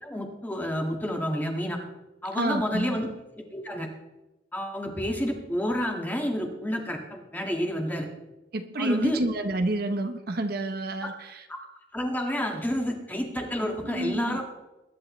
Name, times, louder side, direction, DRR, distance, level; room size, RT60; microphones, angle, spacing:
voice 1, 0.0-1.8 2.2-3.1 3.4-3.9 4.5-8.1 8.8-9.2 11.0-11.1 11.5-11.6 11.9-14.4, equal, 10° left, 2 dB, 1.9 m, -29 dB
voice 2, 2.3-3.0 8.5-11.5 13.6-14.4, right 1 dB, 55° right, 7 dB, 0.9 m, -29 dB
21.0 x 10.5 x 3.2 m, 0.99 s
head